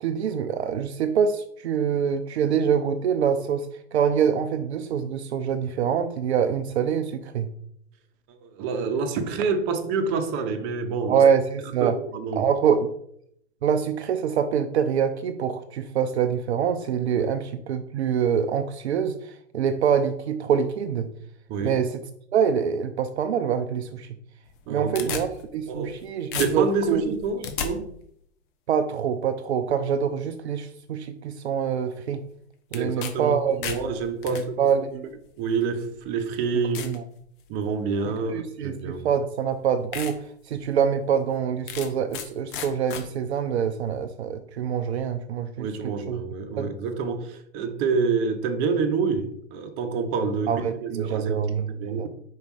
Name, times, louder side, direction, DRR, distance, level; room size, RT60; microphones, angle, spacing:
voice 1, 0.0-7.5 11.1-11.9 12.4-12.9 13.6-21.1 21.6-22.0 22.3-24.2 24.7-27.1 28.7-32.2 32.7-33.8 34.2-35.1 36.8-37.0 38.3-46.2 46.6-46.7 50.5-52.1, right 7 dB, 65° right, 0.6 m, -25 dB
voice 2, 8.3-11.2 11.8-12.4 17.1-17.2 21.5-21.8 24.7-25.2 25.7-25.9 26.4-27.9 32.7-33.3 33.6-34.6 35.4-36.8 37.5-39.1 45.6-51.3 51.8-52.1, right 4 dB, 35° right, 1.0 m, -27 dB
sound 1, 24.5-26.0 26.3-27.7 32.7-33.1 33.4-34.4 35.3-35.4 36.0-36.1 36.7-37.0 37.5-37.8 39.0-39.1 39.5-39.6 39.9-40.1 40.6-40.7 41.7-42.3 42.5-43.0, left 8 dB, 45° left, 1.1 m, -33 dB
5.1 x 4.7 x 4.8 m
hypercardioid pair, 115°, 35 cm